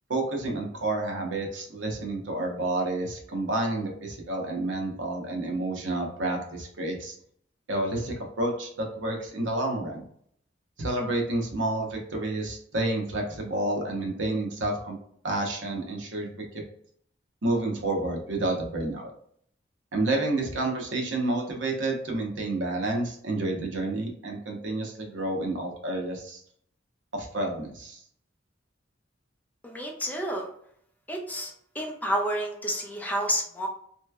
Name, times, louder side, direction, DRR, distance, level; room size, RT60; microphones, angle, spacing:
voice 1, 0.1-7.1 7.7-10.0 10.8-15.0 15.2-16.6 17.4-19.1 19.9-26.4 27.1-28.0, right 2 dB, 75° right, 1 dB, 0.9 m, -29 dB
voice 2, 29.6-30.5 31.1-33.7, equal, 10° left, 1 dB, 0.5 m, -30 dB
3.1 x 3.1 x 2.3 m, 0.64 s
head